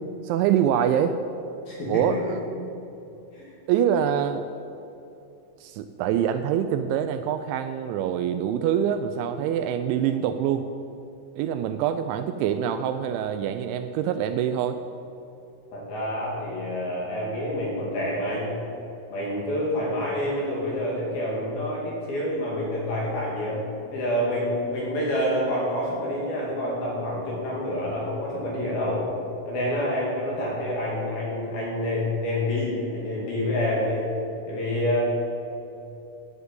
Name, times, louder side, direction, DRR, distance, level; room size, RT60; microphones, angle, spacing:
voice 1, 0.2-1.2 1.9-2.4 3.7-4.5 5.6-10.7 11.4-14.8, right 9 dB, 85° right, 9 dB, 2.8 m, -25 dB
voice 2, 1.7-2.4 3.3-3.5 15.7-18.6 19.1-23.6 23.9-29.1 29.4-34.0 34.5-35.0, left 1 dB, 55° left, -4 dB, 3.9 m, -27 dB
13.5 x 9.7 x 8.1 m, 2.8 s
omnidirectional pair, 5.5 m